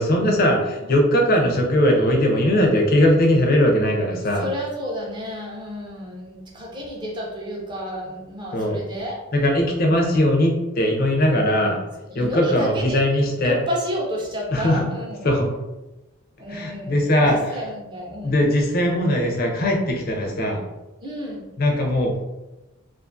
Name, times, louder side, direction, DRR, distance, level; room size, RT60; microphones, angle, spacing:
voice 1, 0.0-4.5 8.5-8.8 9.3-11.8 12.1-13.6 14.5-14.9 15.2-15.5 16.5-17.6 18.2-20.6 21.6-22.1, left 1 dB, 40° left, 1 dB, 0.4 m, -20 dB
voice 2, 1.3-1.7 4.3-9.2 12.0-13.0 13.4-15.3 16.4-18.5 21.0-21.5, equal, 20° right, -2 dB, 0.4 m, -31 dB
2.5 x 2.4 x 2.5 m, 1.0 s
head